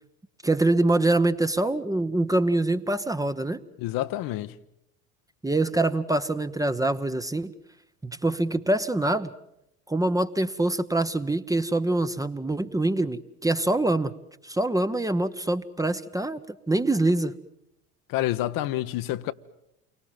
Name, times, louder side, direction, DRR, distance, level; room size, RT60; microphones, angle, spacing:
voice 1, 0.4-3.6 5.4-7.5 8.0-9.3 9.9-14.1 14.4-16.4 16.7-17.3, right 2 dB, 10° right, 1.0 m, -24 dB
voice 2, 3.8-4.5 18.1-19.3, left 14 dB, 45° left, 1.0 m, -28 dB
29.0 x 24.0 x 7.4 m
figure-of-eight pair, 70°, 45 cm